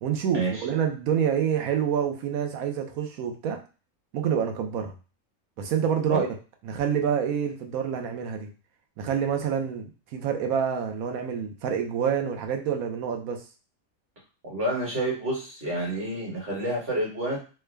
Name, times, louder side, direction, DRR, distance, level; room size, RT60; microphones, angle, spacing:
voice 1, 0.0-3.6 4.1-4.9 5.6-6.3 6.6-8.5 9.0-9.9 10.1-13.4, right 8 dB, 80° right, 4 dB, 1.1 m, -27 dB
voice 2, 14.5-17.4, right 1 dB, 45° right, -4 dB, 1.6 m, -29 dB
3.4 x 2.2 x 3.3 m, 0.34 s
omnidirectional pair, 1.5 m